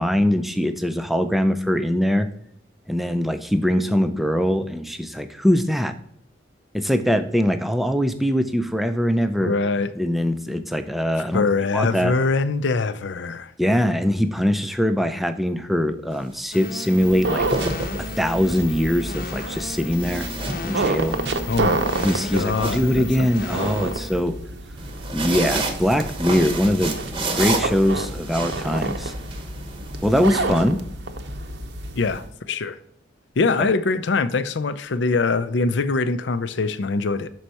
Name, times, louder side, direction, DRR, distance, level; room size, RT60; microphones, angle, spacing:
voice 1, 0.0-2.3 2.9-5.9 6.7-9.5 10.0-11.4 11.7-12.1 13.6-17.5 18.0-20.3 20.6-21.2 22.0-24.4 25.1-27.0 27.3-29.1 30.0-30.8 33.6-33.7, equal, ahead, 8 dB, 0.4 m, -22 dB
voice 2, 9.4-9.9 11.3-13.5 21.5-21.8 22.3-23.9 32.0-32.8 33.4-37.3, left 3 dB, 65° left, 13 dB, 0.5 m, -23 dB
sound 1, 16.1-16.4 17.3-18.4 19.9-21.1 21.5-23.6 24.8-30.4, right 2 dB, 25° right, 0.8 m, -30 dB
sound 2, 16.5-24.2, left 2 dB, 45° left, 0.9 m, -34 dB
sound 3, 17.0-32.3, right 2 dB, 60° right, 0.7 m, -30 dB
6.4 x 4.5 x 4.1 m, 0.72 s
head